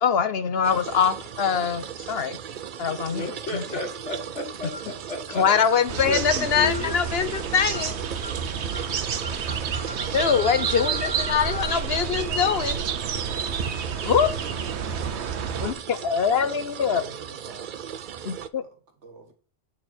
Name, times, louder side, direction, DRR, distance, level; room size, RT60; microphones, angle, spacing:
voice 1, 0.0-2.4 2.8-3.3 3.5-3.6 5.4-7.9 10.1-12.8 14.0-14.3 15.6-17.0 18.2-18.6, left 7 dB, 65° left, 10 dB, 1.0 m, -23 dB
sound 1, 0.6-18.5, right 8 dB, 55° right, 0.6 m, -38 dB
voice 2, 3.1-5.5 6.1-6.9, left 2 dB, 85° left, 2 dB, 2.6 m, -33 dB
sound 2, 4.7-5.0 5.7-5.9 6.7-7.0 7.7-7.9 8.2-8.4 8.7-8.9 9.2-11.7, equal, 35° right, 1.5 m, -37 dB
sound 3, 5.9-15.7, right 7 dB, 70° right, 1.1 m, -29 dB
voice 3, 16.8-17.8 18.6-19.3, right 3 dB, 90° right, 5 dB, 1.8 m, -47 dB
8.8 x 6.5 x 4.3 m, 0.41 s
omnidirectional pair, 1.2 m